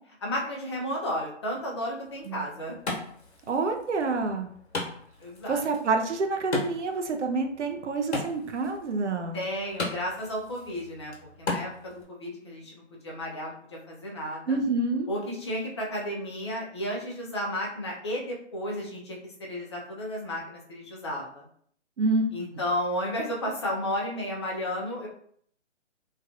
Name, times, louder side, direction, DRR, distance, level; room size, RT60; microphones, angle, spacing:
voice 1, 0.2-2.8 5.2-5.6 9.3-11.1 11.4-14.6 15.1-21.5 22.3-25.1, equal, 25° left, -2 dB, 0.5 m, -33 dB
Wood, 2.0-12.0, left 2 dB, 65° left, 1.1 m, -38 dB
voice 2, 3.5-4.5 5.5-9.4 14.5-15.1 22.0-22.6, right 3 dB, 75° right, 4 dB, 0.6 m, -28 dB
3.2 x 2.2 x 2.5 m, 0.62 s
figure-of-eight pair, 145°, 36 cm